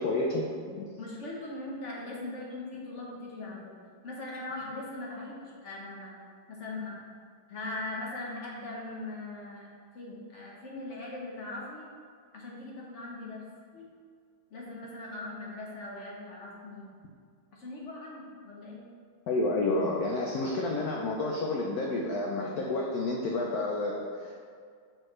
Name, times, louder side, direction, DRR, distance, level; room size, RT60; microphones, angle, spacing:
voice 1, 0.0-0.8 19.3-24.4, left 2 dB, 80° left, -2 dB, 0.8 m, -30 dB
voice 2, 1.0-3.7 4.0-6.1 6.5-7.0 7.5-9.7 9.9-11.9 12.3-13.4 13.7-13.9 14.5-16.9 17.5-18.8, left 2 dB, 50° left, -4 dB, 0.9 m, -40 dB
6.1 x 4.9 x 3.2 m, 2.1 s
omnidirectional pair, 2.3 m